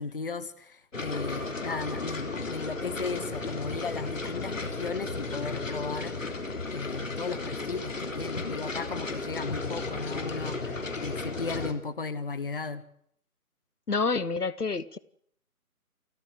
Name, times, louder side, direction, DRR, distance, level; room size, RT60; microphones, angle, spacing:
voice 1, 0.0-6.3 6.7-12.8, left 4 dB, 35° left, 13 dB, 1.3 m, -36 dB
sound 1, 0.9-11.7, left 3 dB, 55° left, 3.4 m, -34 dB
voice 2, 13.9-15.0, left 4 dB, 85° left, 18 dB, 1.1 m, -28 dB
28.5 x 14.0 x 8.2 m, 0.67 s
figure-of-eight pair, 150°, 45 cm